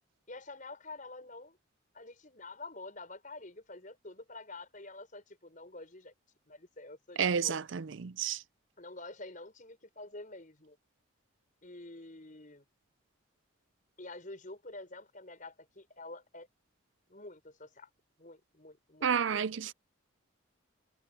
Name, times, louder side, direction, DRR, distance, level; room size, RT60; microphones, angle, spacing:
voice 1, 0.3-1.6 1.9-6.1 6.4-7.6 8.8-10.8 11.6-12.6 14.0-16.5 17.1-17.9 18.2-19.4, left 2 dB, 40° left, 6.2 m, -48 dB
voice 2, 7.2-8.4 19.0-19.7, right 7 dB, 70° right, 0.5 m, -30 dB
head